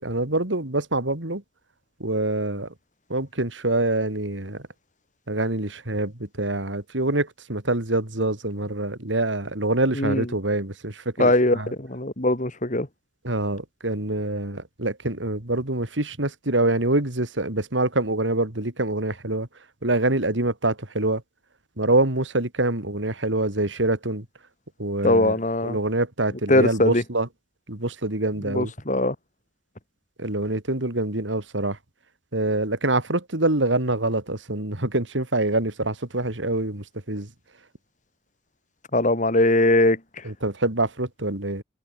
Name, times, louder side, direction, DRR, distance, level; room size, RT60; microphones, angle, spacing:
voice 1, 0.0-1.4 2.0-2.7 3.1-4.6 5.3-6.1 6.4-11.7 13.2-19.5 19.8-21.2 21.8-24.2 24.8-25.3 25.6-27.3 27.7-28.7 30.2-31.8 32.3-37.3 40.2-41.6, right 2 dB, 90° right, 3.5 m, -25 dB
voice 2, 10.0-10.3 11.2-12.9 25.0-25.8 26.5-27.0 28.5-29.2 38.9-40.0, left 1 dB, 45° left, 3.8 m, -21 dB
head